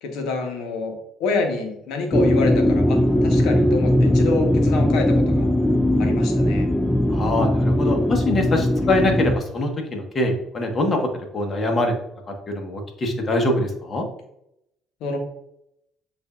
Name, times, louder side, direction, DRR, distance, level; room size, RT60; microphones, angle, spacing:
voice 1, 0.0-0.9 1.2-5.5 6.0-6.7 15.0-15.2, left 3 dB, 75° left, 3 dB, 1.0 m, -27 dB
sound 1, 2.1-9.4, left 1 dB, ahead, 0.3 m, -19 dB
voice 2, 7.1-11.1 11.3-11.9 12.5-14.0, left 1 dB, 40° left, 2 dB, 1.2 m, -23 dB
7.9 x 2.6 x 2.4 m, 0.79 s
supercardioid pair, 70°, 0 cm